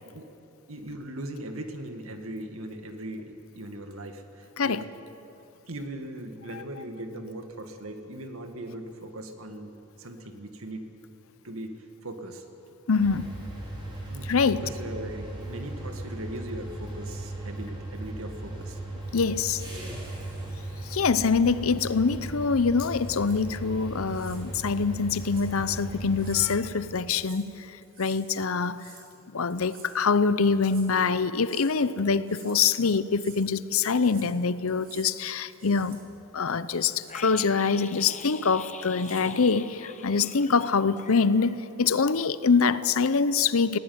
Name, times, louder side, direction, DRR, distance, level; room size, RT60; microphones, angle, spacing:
voice 1, 0.7-4.9 5.7-10.9 11.4-12.4 14.1-18.8 19.7-19.9, right 1 dB, 70° right, 6 dB, 2.0 m, -39 dB
voice 2, 12.9-13.3 14.3-14.6 19.1-19.6 20.8-28.8 29.3-36.0 36.3-43.8, left 5 dB, 70° left, 15 dB, 0.7 m, -25 dB
sound 1, 13.0-26.5, right 2 dB, 20° right, 5.3 m, -37 dB
sound 2, 22.9-23.4 24.1-24.4 25.2-25.5 26.0-26.5 26.9-27.5 27.8-28.2 28.6-29.1 29.5-30.0 30.5-30.9 31.3-31.7 32.1-32.6 33.0-33.4 33.8-34.3 34.7-35.1 35.5-36.0 36.5-37.2 38.0-38.4 38.8-39.3, right 5 dB, 40° right, 4.0 m, -52 dB
sound 3, 37.1-41.9 42.2-42.3, left 7 dB, 35° left, 0.8 m, -44 dB
19.5 x 16.5 x 9.4 m, 3.0 s
head